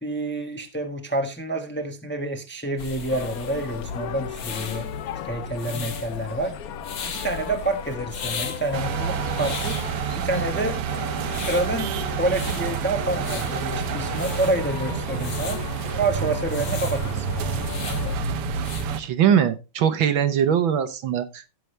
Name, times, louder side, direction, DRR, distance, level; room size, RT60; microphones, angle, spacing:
voice 1, 0.0-4.9 5.2-6.6 7.0-9.8 10.1-10.8 11.4-15.6 16.0-17.3, right 2 dB, 5° left, 1.0 m, -28 dB
sound 1, 2.8-18.9, left 4 dB, 55° left, 2.1 m, -35 dB
sound 2, 3.1-18.2, left 10 dB, 85° left, 0.8 m, -37 dB
sound 3, 8.7-19.0, right 11 dB, 90° right, 1.8 m, -29 dB
voice 2, 19.0-21.6, right 8 dB, 70° right, 1.7 m, -21 dB
16.0 x 6.3 x 3.3 m
omnidirectional pair, 2.4 m